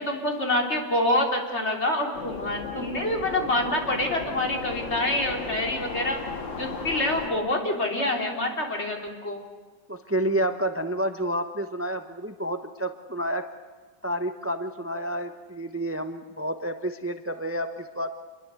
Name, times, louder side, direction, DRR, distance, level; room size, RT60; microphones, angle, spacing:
voice 1, 0.0-6.2 6.6-9.4, left 1 dB, 35° left, 2 dB, 3.7 m, -26 dB
sound 1, 2.1-7.3, left 4 dB, 70° left, 2.9 m, -35 dB
voice 2, 9.9-13.5 14.0-18.1, right 1 dB, 20° right, 8 dB, 0.4 m, -29 dB
27.5 x 22.0 x 8.3 m, 1.4 s
omnidirectional pair, 2.1 m